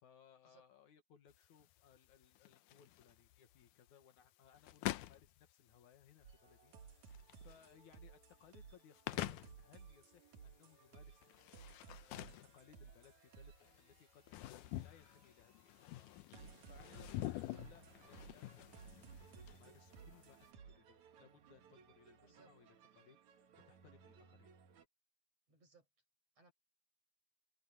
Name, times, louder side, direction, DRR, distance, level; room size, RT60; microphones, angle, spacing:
voice 1, 0.0-7.1 7.4-11.2 11.5-11.8 12.1-24.5, left 8 dB, 70° left, 3.0 m, -66 dB
sound 1, 1.3-20.5, left 15 dB, 90° left, 2.3 m, -48 dB
sound 2, 6.2-24.9, right 6 dB, 65° right, 3.1 m, -60 dB
voice 2, 25.5-25.9 26.4-26.5, right 4 dB, 50° right, 9.2 m, -66 dB
omnidirectional pair, 3.6 m